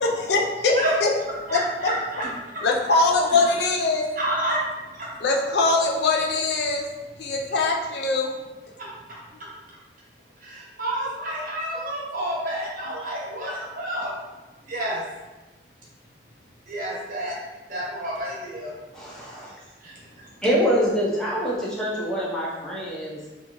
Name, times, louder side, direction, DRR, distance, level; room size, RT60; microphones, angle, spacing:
voice 1, 0.0-1.1 1.5-1.9 2.6-4.1 5.2-6.8 7.2-8.3, left 3 dB, 70° left, 0 dB, 0.4 m, -22 dB
voice 2, 4.2-4.6 4.9-5.1 10.4-14.1 14.7-15.0 16.7-17.3 17.7-18.7 19.8-19.9, right 1 dB, 50° right, -5 dB, 0.8 m, -29 dB
voice 3, 18.9-19.6 20.4-23.3, equal, 5° left, -6 dB, 0.5 m, -25 dB
2.6 x 2.4 x 2.8 m, 1.2 s
head